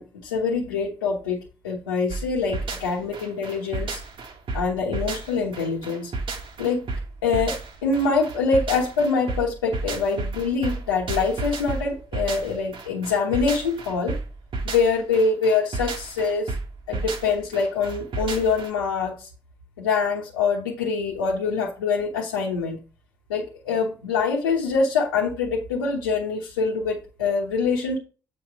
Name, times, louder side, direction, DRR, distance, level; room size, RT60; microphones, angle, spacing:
voice 1, 0.0-4.0 4.5-6.1 6.6-6.9 7.2-14.2 14.6-16.5 16.9-19.3 19.8-22.8 23.3-28.0, left 4 dB, 90° left, 1.1 m, -24 dB
sound 1, 2.1-18.7, right 3 dB, 55° right, 1.5 m, -32 dB
8.2 x 4.4 x 4.6 m
hypercardioid pair, 45°, 11 cm